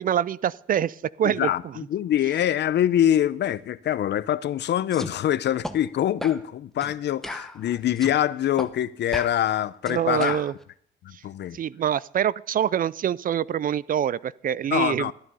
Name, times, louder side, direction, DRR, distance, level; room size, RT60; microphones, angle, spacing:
voice 1, 0.0-1.5 9.9-10.5 11.1-11.2 11.5-15.1, right 9 dB, 45° right, 0.4 m, -25 dB
voice 2, 1.2-10.4 11.0-11.6 14.7-15.1, left 11 dB, 60° left, 0.6 m, -24 dB
sound 1, 4.9-5.1 5.6-5.8 6.2-6.4 6.8-6.9 7.2-8.2 8.6-8.7 9.1-10.5, left 1 dB, ahead, 1.0 m, -36 dB
13.5 x 9.0 x 5.5 m
cardioid pair, 90°, 20 cm